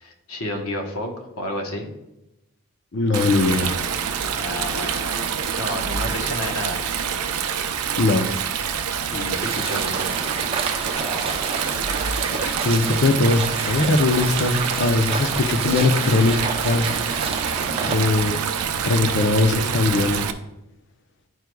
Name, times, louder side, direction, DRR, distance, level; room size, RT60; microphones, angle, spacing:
voice 1, 0.0-1.9 4.4-5.3 5.6-6.8 9.1-10.3 17.8-18.1, left 1 dB, 75° left, 2 dB, 1.1 m, -31 dB
voice 2, 2.9-3.8 8.0-8.3 12.4-16.4 16.6-16.9 17.9-18.4 18.8-20.2, left 3 dB, 55° left, 8 dB, 0.5 m, -20 dB
Stream, 3.1-20.3, right 7 dB, 90° right, 0.5 m, -26 dB
sound 1, 9.3-18.1, right 4 dB, 25° right, 0.6 m, -30 dB
sound 2, 11.0-12.3, right 1 dB, 5° left, 0.8 m, -38 dB
10.5 x 4.6 x 2.3 m, 0.91 s
head